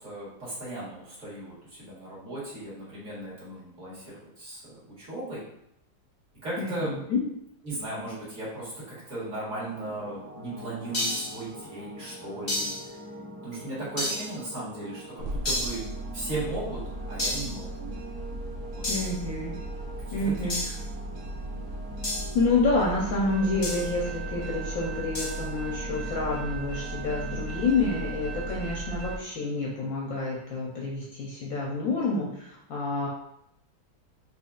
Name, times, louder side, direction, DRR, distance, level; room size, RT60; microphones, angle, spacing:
voice 1, 0.0-5.4 6.4-7.0 7.6-13.0 13.4-15.8 16.1-16.8 17.1-17.9 18.8-18.9 20.1-20.5, right 2 dB, 50° right, -8 dB, 1.8 m, -37 dB
voice 2, 6.6-7.2 18.9-19.5 20.1-20.6 22.3-33.1, left 3 dB, 70° left, -3 dB, 0.9 m, -28 dB
sound 1, 9.2-28.6, right 1 dB, 20° right, 1.2 m, -44 dB
sound 2, 10.9-11.4 12.5-12.9 14.0-14.4 15.4-15.9 17.2-17.6 18.8-19.2 20.5-20.8 22.0-22.3 23.6-23.9 25.1-25.4, left 1 dB, 35° left, 0.7 m, -31 dB
sound 3, 15.2-29.2, right 2 dB, 65° right, 0.9 m, -37 dB
4.3 x 2.9 x 2.4 m, 0.74 s
omnidirectional pair, 1.9 m